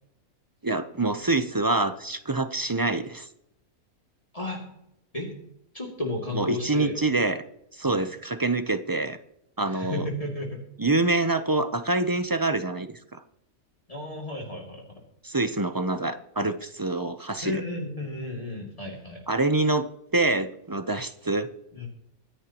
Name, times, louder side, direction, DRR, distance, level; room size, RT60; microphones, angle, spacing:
voice 1, 0.6-3.3 6.3-7.4 7.7-9.2 9.6-10.0 10.8-13.2 15.2-17.6 19.3-21.5, right 2 dB, 25° right, 10 dB, 0.4 m, -26 dB
voice 2, 5.7-6.9 7.8-8.1 9.6-10.6 13.9-15.0 17.4-19.2 21.7-21.9, left 2 dB, 25° left, -1 dB, 2.5 m, -33 dB
25.5 x 10.0 x 3.0 m, 0.77 s
omnidirectional pair, 1.5 m